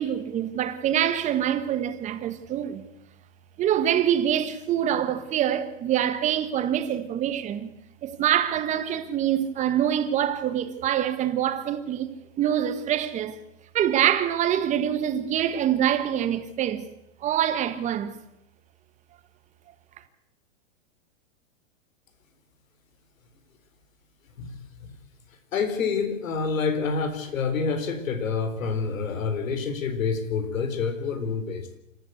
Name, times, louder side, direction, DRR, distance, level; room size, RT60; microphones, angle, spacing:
voice 1, 0.0-2.8 3.6-7.7 8.0-12.1 12.4-13.3 13.7-16.9 17.2-18.1, right 10 dB, 20° right, 1.5 m, -25 dB
voice 2, 24.4-24.9 25.5-31.8, left 5 dB, 80° left, 4.1 m, -28 dB
27.0 x 14.5 x 8.1 m
hypercardioid pair, 160°, 39 cm